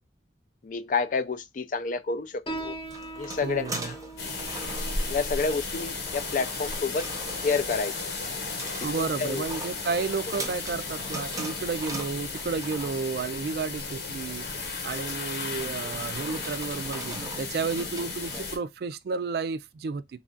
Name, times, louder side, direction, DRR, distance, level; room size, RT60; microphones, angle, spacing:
voice 1, 0.6-2.8 3.2-4.0 5.1-7.1 7.4-7.9 8.6-9.4 18.3-18.4, left 4 dB, 50° left, 0.4 m, -29 dB
Piano, 2.5-9.5, right 2 dB, 30° left, 0.8 m, -43 dB
sound 1, 2.5-18.4, right 2 dB, 20° right, 0.7 m, -42 dB
voice 2, 3.4-3.9 8.8-14.5 14.8-20.2, right 4 dB, 60° right, 0.3 m, -32 dB
sound 2, 4.2-18.6, left 3 dB, 65° left, 1.0 m, -34 dB
3.3 x 2.4 x 3.7 m
head